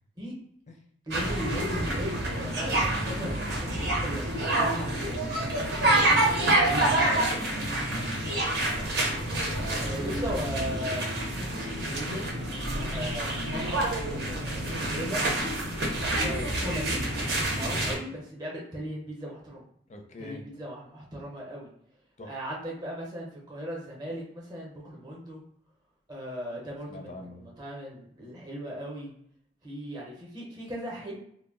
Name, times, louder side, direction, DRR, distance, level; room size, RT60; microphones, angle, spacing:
voice 1, 1.1-2.9 3.2-6.1 6.6-7.2 9.9-11.0 11.3-12.2 12.9-15.2 16.0-17.0 17.3-19.6 20.2-21.7 22.2-25.4 26.1-29.1 29.6-31.2, equal, 25° right, -4 dB, 0.7 m, -38 dB
sound 1, 1.1-17.9, right 1 dB, 60° right, 0.7 m, -28 dB
voice 2, 6.3-9.0 9.5-10.2 19.9-20.4 22.2-22.4 26.9-27.5, left 2 dB, 35° left, 3 dB, 0.4 m, -43 dB
2.2 x 2.0 x 3.6 m, 0.69 s
head